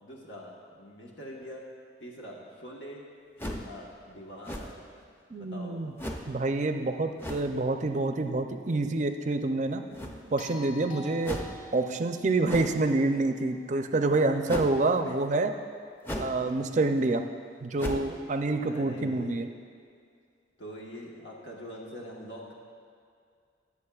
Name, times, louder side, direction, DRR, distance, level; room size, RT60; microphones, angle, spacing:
voice 1, 0.0-1.6 2.0-3.0 3.4-5.0 5.4-5.8 9.9-10.1 14.1-15.2 18.6-19.4 20.6-22.5, equal, 85° left, -3 dB, 1.3 m, -45 dB
sound 1, 3.4-3.8 4.4-4.9 6.0-6.3 7.2-7.5 9.9-10.4 11.2-11.6 12.5-12.9 14.5-14.8 16.0-16.4 16.8-16.9 17.8-18.2, equal, 10° left, 0.6 m, -36 dB
voice 2, 5.3-5.9 6.3-9.8 10.3-11.4 11.7-15.5 16.2-17.2 17.6-19.5, right 2 dB, 40° right, 7 dB, 0.5 m, -27 dB
sound 2, 10.4-14.6 16.9-17.0, equal, 50° left, 1.3 m, -49 dB
21.0 x 7.1 x 2.4 m, 2.3 s
head